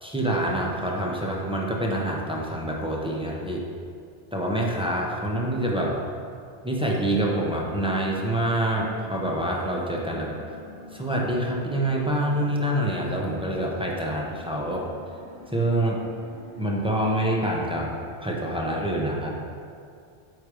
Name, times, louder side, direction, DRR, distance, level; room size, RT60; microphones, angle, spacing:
voice 1, 0.0-3.6 4.3-6.0 6.6-10.4 10.9-14.9 15.5-16.0 16.6-17.9 18.2-19.3, right 1 dB, 5° right, -3 dB, 0.6 m, -26 dB
sound 1, 6.9-17.8, equal, 45° right, 1.2 m, -46 dB
8.6 x 3.2 x 4.8 m, 2.4 s
omnidirectional pair, 1.1 m